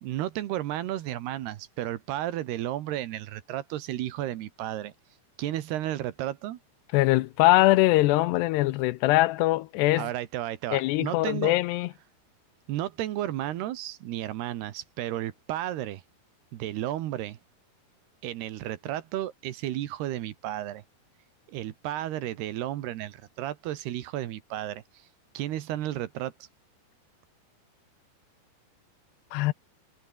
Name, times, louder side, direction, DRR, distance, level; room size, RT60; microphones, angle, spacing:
voice 1, 0.0-4.9 5.4-6.6 10.0-11.5 12.7-16.0 16.5-17.4 18.2-20.8 21.5-24.8 25.3-26.3, right 13 dB, 75° right, 3.2 m, -33 dB
voice 2, 6.9-10.1 10.7-11.9 29.3-29.5, left 18 dB, 80° left, 2.7 m, -22 dB
omnidirectional pair, 5.0 m